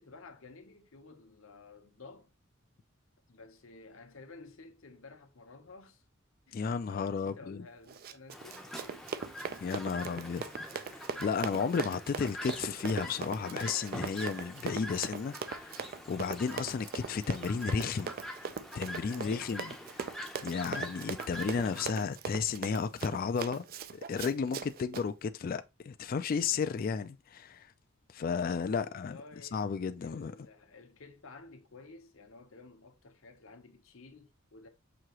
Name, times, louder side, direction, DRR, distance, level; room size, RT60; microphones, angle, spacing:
voice 1, 0.0-2.3 3.3-6.1 6.5-6.6 6.9-9.1 19.0-19.6 28.6-29.7 30.0-34.7, left 3 dB, 75° left, 0.8 m, -52 dB
voice 2, 6.5-7.6 9.6-10.4 10.7-18.1 18.7-19.7 20.4-23.7 23.9-27.7 28.1-29.2 29.5-30.3, left 5 dB, 45° left, 0.3 m, -33 dB
Run, 7.9-25.1, right 6 dB, 45° right, 0.3 m, -40 dB
Chirp tweet, 8.3-21.9, equal, ahead, 0.6 m, -45 dB
6.1 x 2.8 x 2.9 m
head